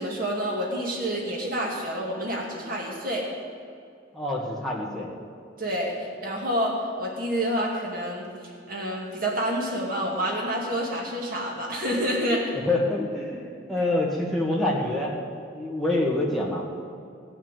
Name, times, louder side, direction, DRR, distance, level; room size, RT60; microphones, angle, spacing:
voice 1, 0.0-3.3 5.6-8.3 8.7-12.4, equal, 45° right, -3 dB, 2.3 m, -28 dB
voice 2, 4.1-5.1 12.6-15.1 15.5-16.6, left 2 dB, ahead, -5 dB, 1.9 m, -26 dB
16.0 x 6.1 x 9.0 m, 2.4 s
head